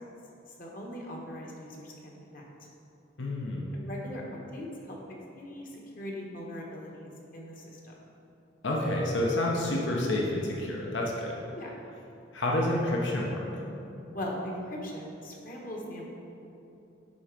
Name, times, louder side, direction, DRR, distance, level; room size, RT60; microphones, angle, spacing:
voice 1, 0.6-2.4 3.7-5.0 5.3-5.7 6.0-7.9 11.5-11.7 14.1-16.1, left 1 dB, 45° left, -1 dB, 1.4 m, -40 dB
voice 2, 3.2-3.7 8.6-11.4 12.3-13.6, left 1 dB, 70° left, -2 dB, 1.0 m, -29 dB
11.0 x 4.4 x 5.2 m, 2.8 s
head